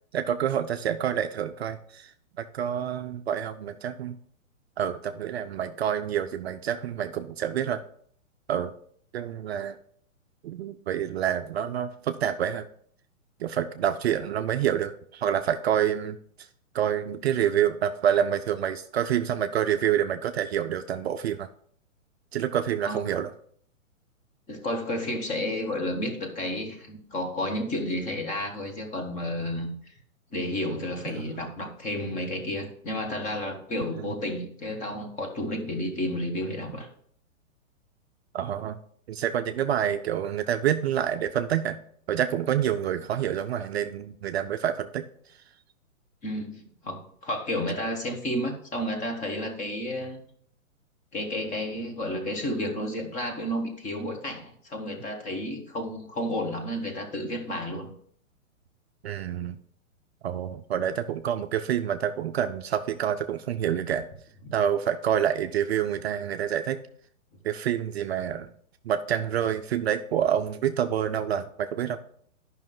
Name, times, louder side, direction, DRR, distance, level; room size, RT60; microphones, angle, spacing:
voice 1, 0.1-2.1 2.4-4.2 4.8-7.8 8.5-8.7 9.1-9.8 10.4-12.6 13.4-16.2 16.7-21.5 22.3-23.3 34.0-34.1 38.3-38.8 39.1-41.8 42.1-45.0 59.0-59.6 60.2-64.1 64.5-66.8 67.4-68.5 68.8-72.0, right 9 dB, 50° right, 9 dB, 0.5 m, -27 dB
voice 2, 24.5-29.7 30.3-36.9 46.2-50.2 51.1-57.9 64.4-64.5, left 1 dB, 20° left, 4 dB, 1.2 m, -31 dB
10.5 x 5.7 x 3.7 m, 0.63 s
hypercardioid pair, 135°, 42 cm